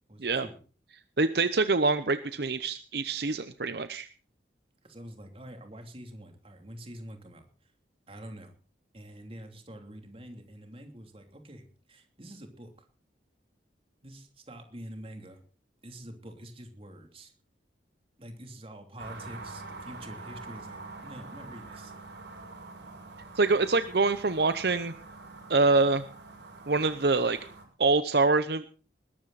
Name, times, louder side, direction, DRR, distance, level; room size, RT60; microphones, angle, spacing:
voice 1, 0.1-0.6 4.8-7.7 8.1-8.5 8.9-12.9 14.0-15.4 15.8-17.3 18.2-21.9, equal, 30° right, 5 dB, 3.0 m, -46 dB
voice 2, 1.2-4.1 23.4-24.9 25.5-26.0 26.7-27.4 27.8-28.6, right 3 dB, 65° right, 12 dB, 0.8 m, -25 dB
sound 1, 19.0-27.6, right 3 dB, 85° right, 6.3 m, -45 dB
20.5 x 12.5 x 4.1 m, 0.37 s
head